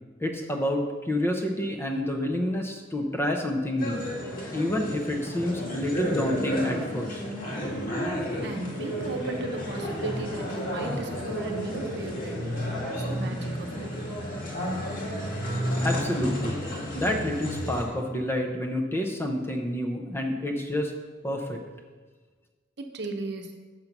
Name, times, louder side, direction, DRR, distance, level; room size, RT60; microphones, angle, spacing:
voice 1, 0.2-7.2 15.8-16.6 16.9-20.9 21.2-21.6, left 1 dB, 10° left, 2 dB, 0.7 m, -29 dB
sound 1, 3.8-17.8, equal, 45° left, 1.8 m, -32 dB
voice 2, 8.4-12.4 12.8-13.9 22.8-23.6, right 2 dB, 60° right, 3 dB, 0.9 m, -36 dB
6.7 x 5.5 x 5.9 m, 1.4 s
head